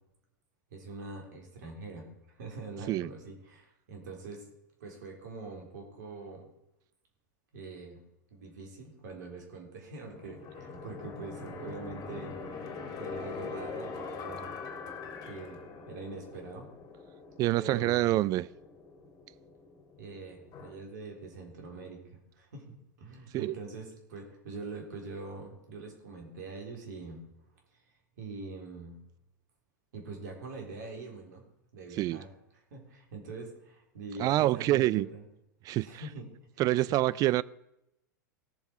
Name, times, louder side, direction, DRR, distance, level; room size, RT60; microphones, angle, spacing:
voice 1, 0.7-4.5 4.8-6.5 7.5-8.0 8.3-12.4 13.0-14.5 15.2-15.6 15.9-16.7 17.6-18.1 20.0-27.2 27.7-27.8 28.2-29.0 29.9-31.4 31.7-32.3 32.7-35.2 35.8-36.2 36.5-36.9, right 3 dB, 70° right, 3.8 m, -44 dB
sound 1, 10.1-20.7, left 4 dB, 35° left, 2.3 m, -43 dB
voice 2, 17.4-18.5 23.3-23.5 31.9-32.2 34.2-35.1 35.6-36.0 36.6-37.4, right 16 dB, 40° right, 0.4 m, -26 dB
17.5 x 7.2 x 4.6 m
hypercardioid pair, 100°, 10 cm